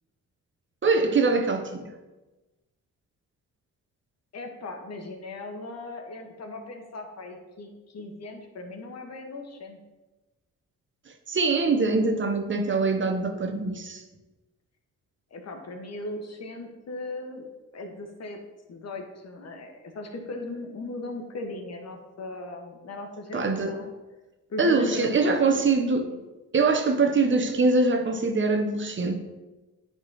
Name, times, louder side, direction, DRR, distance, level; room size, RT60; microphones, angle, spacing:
voice 1, 0.8-1.9 11.3-14.0 23.3-23.8 24.6-26.1 26.5-29.2, right 3 dB, 40° right, 0.9 m, -23 dB
voice 2, 4.3-9.8 15.3-17.5 17.7-18.4 18.7-23.9 24.5-25.3 26.1-26.2, left 2 dB, 55° left, 1.3 m, -38 dB
9.5 x 3.7 x 4.1 m
cardioid pair, 85°, 32 cm